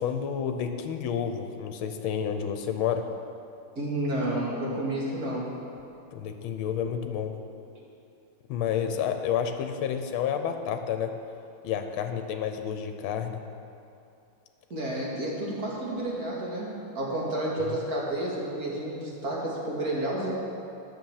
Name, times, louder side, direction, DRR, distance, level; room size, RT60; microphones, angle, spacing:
voice 1, 0.0-3.1 6.1-7.3 8.5-11.1 11.6-13.4, left 8 dB, 80° left, 7 dB, 1.5 m, -30 dB
voice 2, 3.8-5.5 14.7-20.3, right 1 dB, 45° right, -4 dB, 2.4 m, -30 dB
9.3 x 7.0 x 7.3 m, 2.6 s
omnidirectional pair, 2.3 m